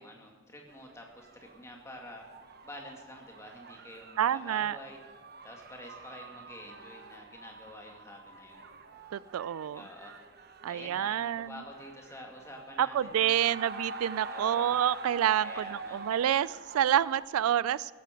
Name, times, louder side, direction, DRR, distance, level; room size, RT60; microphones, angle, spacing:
voice 1, 0.0-2.2 2.6-5.0 5.4-8.6 9.7-10.1 10.7-13.3 14.3-14.7 15.4-16.0, left 1 dB, 15° left, 1 dB, 2.2 m, -48 dB
sound 1, 0.7-17.3, right 3 dB, 45° right, 1.0 m, -46 dB
voice 2, 4.2-4.8 9.1-9.8 10.6-11.5 12.8-17.9, right 10 dB, 85° right, 19 dB, 0.3 m, -28 dB
15.5 x 13.5 x 5.2 m, 1.5 s
head